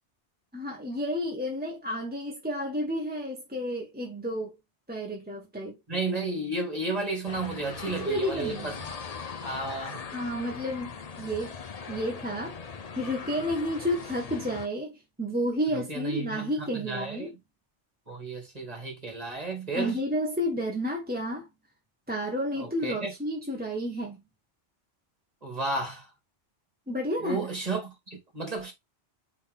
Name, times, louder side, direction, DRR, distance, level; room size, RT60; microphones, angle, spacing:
voice 1, 0.5-4.5 4.9-5.8 7.9-8.7 10.1-11.5 11.9-12.6 12.9-17.3 19.7-21.5 22.1-24.2 26.9-27.5, equal, 10° right, 1.4 m, -31 dB
voice 2, 5.9-8.9 9.4-10.0 15.9-17.3 18.1-20.0 22.6-23.1 25.4-26.1 27.2-28.7, right 2 dB, 35° right, 3.1 m, -33 dB
sound 1, 7.3-14.7, left 5 dB, 40° left, 0.8 m, -40 dB
8.3 x 3.9 x 3.7 m
omnidirectional pair, 1.2 m